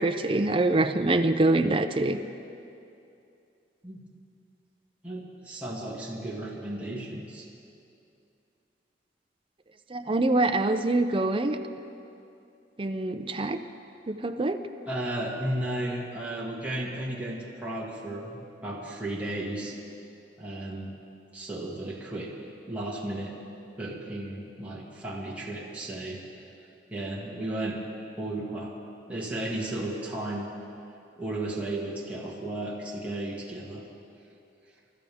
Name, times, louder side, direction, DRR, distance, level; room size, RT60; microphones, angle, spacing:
voice 1, 0.0-2.2 9.9-11.6 12.8-13.6 14.1-14.6, right 2 dB, 30° right, 7 dB, 0.6 m, -25 dB
voice 2, 5.0-7.5 14.9-19.8 20.4-20.9 21.3-23.4 23.8-26.2 26.9-27.8 28.2-28.7 29.1-30.5 31.2-33.8, right 1 dB, 10° right, -6 dB, 2.0 m, -34 dB
29.5 x 12.5 x 3.6 m, 2.6 s
head